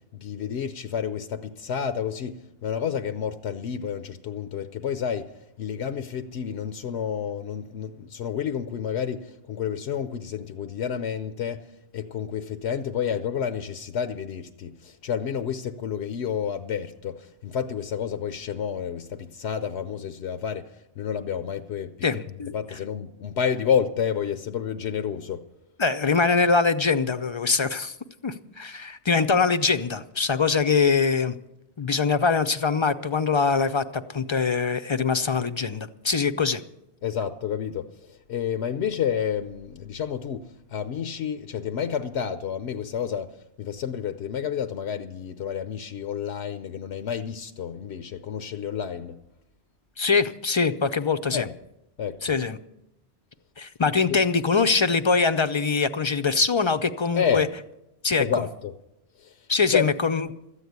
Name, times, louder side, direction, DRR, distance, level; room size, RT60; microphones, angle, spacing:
voice 1, 0.1-2.4 2.6-5.3 5.6-11.7 11.9-22.1 22.5-25.4 37.0-49.2 51.3-51.5 52.0-52.3 57.1-57.5 58.2-58.7 59.2-59.5 59.7-59.9, left 8 dB, 85° left, 0.9 m, -30 dB
voice 2, 22.0-22.5 25.8-27.9 28.2-31.4 31.8-36.6 50.0-51.5 52.2-52.6 53.6-57.5 58.0-58.2 59.5-60.3, left 4 dB, 40° left, 0.4 m, -23 dB
13.5 x 8.3 x 9.3 m
omnidirectional pair, 1.1 m